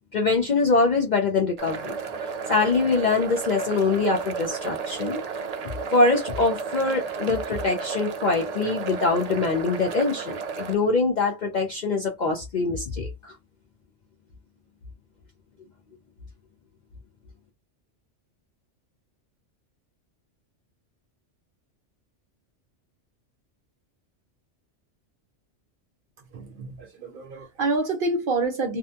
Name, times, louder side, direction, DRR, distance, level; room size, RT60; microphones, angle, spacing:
voice 1, 0.1-1.9 2.5-5.2 5.9-13.3, left 3 dB, 55° left, 0.5 m, -23 dB
sound 1, 1.6-10.8, right 5 dB, 80° right, 0.3 m, -33 dB
voice 2, 26.3-28.8, right 3 dB, 55° right, 0.7 m, -27 dB
2.7 x 2.2 x 2.5 m
omnidirectional pair, 1.3 m